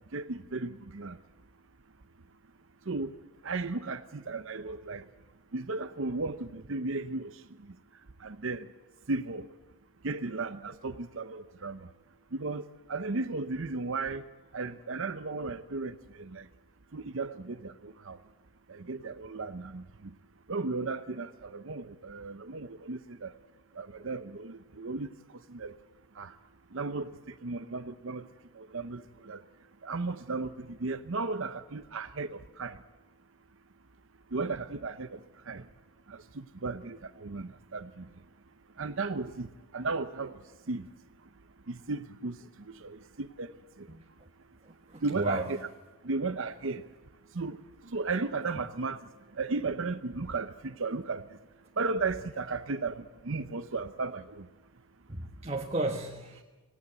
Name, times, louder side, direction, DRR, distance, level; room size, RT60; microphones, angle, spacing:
voice 1, 0.1-1.2 2.8-3.2 3.4-5.1 5.5-7.8 8.2-8.7 9.1-9.5 10.0-11.9 12.3-14.3 14.5-16.5 16.9-18.2 18.7-20.1 20.5-23.3 23.7-25.8 26.1-26.4 26.7-28.3 28.5-29.4 29.8-32.8 34.3-35.7 36.1-38.1 38.8-40.4 40.7-40.9 41.7-43.9 45.0-45.6 46.0-46.8 47.3-51.4 51.8-54.5, right 3 dB, 60° right, 0.7 m, -35 dB
voice 2, 44.9-45.5 55.1-56.4, right 2 dB, 25° right, 1.4 m, -33 dB
26.0 x 18.5 x 8.1 m
head